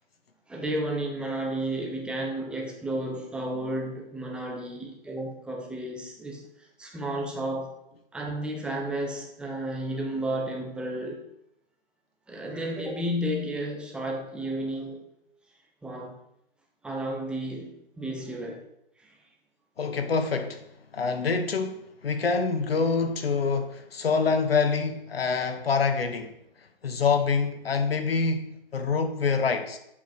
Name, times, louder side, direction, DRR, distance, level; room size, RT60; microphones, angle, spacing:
voice 1, 0.5-6.4 6.8-7.7 8.1-11.2 12.3-15.0 15.8-16.2 16.8-17.7 18.0-18.6 19.0-19.2, right 1 dB, 5° right, 1.0 m, -32 dB
voice 2, 19.8-20.6 20.9-26.4 26.8-29.8, left 5 dB, 75° left, 1.5 m, -26 dB
8.1 x 5.0 x 6.0 m
hypercardioid pair, 140°, 30 cm